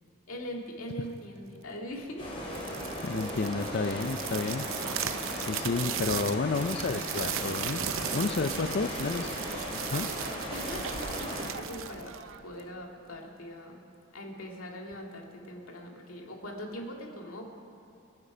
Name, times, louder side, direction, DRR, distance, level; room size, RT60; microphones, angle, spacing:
voice 1, 0.3-2.3 8.5-8.7 10.5-12.2 12.4-13.8 14.1-17.5, equal, 80° left, 1 dB, 2.3 m, -41 dB
sound 1, 2.2-11.5, left 1 dB, 25° left, 3.5 m, -37 dB
sound 2, 2.4-12.7, right 9 dB, 70° right, 0.7 m, -37 dB
voice 2, 3.0-4.7 5.4-7.8 8.1-9.4 9.9-10.1, left 4 dB, 50° left, 7 dB, 0.5 m, -31 dB
26.5 x 9.7 x 5.0 m, 2.7 s
head